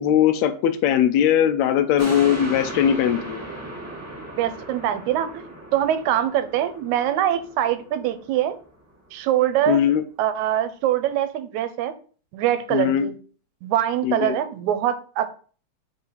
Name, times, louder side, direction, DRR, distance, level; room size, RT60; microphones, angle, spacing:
voice 1, 0.0-3.4 9.7-10.0 12.7-13.1 14.0-14.4, left 9 dB, 80° left, 9 dB, 1.7 m, -20 dB
sound 1, 2.0-8.6 9.1-9.2, right 1 dB, 10° right, 1.1 m, -36 dB
voice 2, 4.4-8.6 9.1-9.9 10.2-11.9 12.3-13.2 13.6-15.3, right 11 dB, 90° right, 11 dB, 2.0 m, -23 dB
4.8 x 3.9 x 5.6 m, 0.40 s
omnidirectional pair, 3.3 m